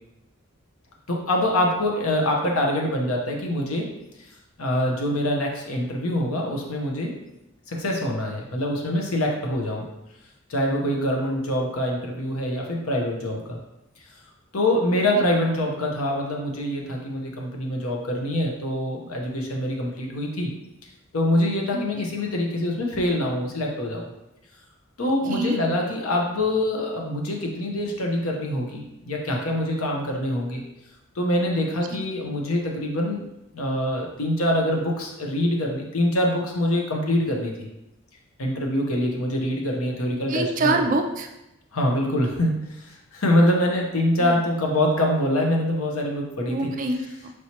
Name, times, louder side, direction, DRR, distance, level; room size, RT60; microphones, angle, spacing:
voice 1, 1.1-3.9 4.6-7.1 7.7-9.8 10.5-13.6 14.5-20.5 21.1-24.0 25.0-30.6 31.1-33.3 33.5-37.7 38.4-40.8 41.7-46.7, left 1 dB, 85° left, 0 dB, 0.8 m, -25 dB
voice 2, 25.0-25.6 31.9-32.0 40.3-41.3 44.2-44.4 46.5-47.3, right 2 dB, 40° right, 4 dB, 0.3 m, -26 dB
4.6 x 3.0 x 2.8 m, 0.92 s
head